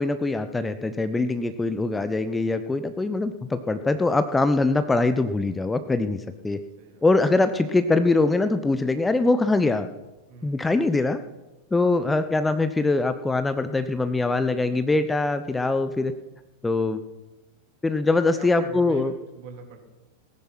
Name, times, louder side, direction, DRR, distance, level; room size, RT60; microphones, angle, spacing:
voice 1, 0.0-6.6 7.0-9.9 10.4-11.2 11.7-16.1 16.6-17.0 17.8-19.1, left 3 dB, 10° left, 11 dB, 0.7 m, -23 dB
voice 2, 10.3-10.6 18.3-19.8, right 2 dB, 50° right, 2 dB, 3.4 m, -43 dB
18.5 x 10.5 x 5.9 m, 1.1 s
figure-of-eight pair, 90°, 0 cm